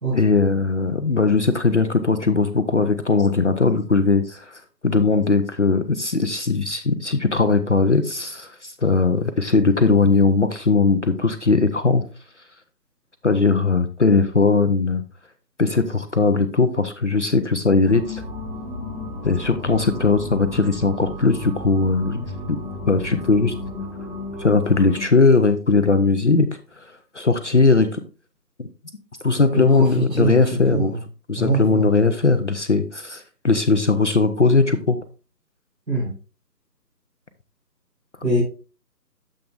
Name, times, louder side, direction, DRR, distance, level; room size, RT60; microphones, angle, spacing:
voice 1, 0.1-12.0 13.2-15.0 15.6-18.2 19.2-22.6 22.9-23.5 24.4-26.5 26.8-28.0 28.6-28.7 29.2-31.0 31.3-35.0, left 3 dB, 45° left, 8 dB, 0.7 m, -19 dB
sound 1, 17.9-25.0, left 1 dB, 25° right, 2.7 m, -33 dB
voice 2, 29.5-30.4 30.7-31.0 31.4-31.9 35.9-36.1 38.2-38.4, right 2 dB, 80° right, -4 dB, 4.1 m, -23 dB
8.9 x 7.6 x 2.4 m, 0.34 s
figure-of-eight pair, 160°, 50 cm